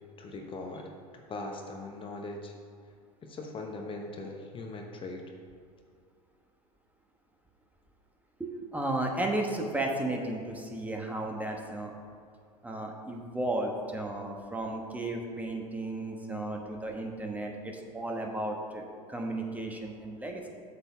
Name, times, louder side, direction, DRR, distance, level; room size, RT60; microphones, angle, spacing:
voice 1, 0.2-0.8 1.3-2.5 3.2-5.2, left 2 dB, 30° left, 2 dB, 0.9 m, -40 dB
voice 2, 8.4-11.9 12.6-20.5, right 1 dB, 10° right, 1 dB, 1.2 m, -34 dB
8.1 x 4.2 x 6.8 m, 2.3 s
hypercardioid pair, 85°, 19 cm